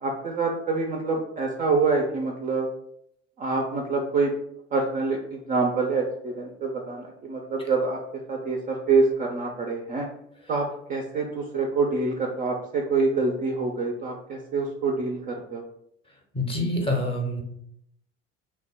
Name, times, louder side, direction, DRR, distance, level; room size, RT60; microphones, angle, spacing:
voice 1, 0.0-2.7 3.4-4.3 4.7-8.0 8.3-10.1 10.5-15.6, right 4 dB, 25° right, 0 dB, 0.3 m, -26 dB
voice 2, 16.3-17.4, left 1 dB, 15° left, 1 dB, 0.6 m, -26 dB
2.8 x 2.0 x 3.3 m, 0.75 s
figure-of-eight pair, 65°, 36 cm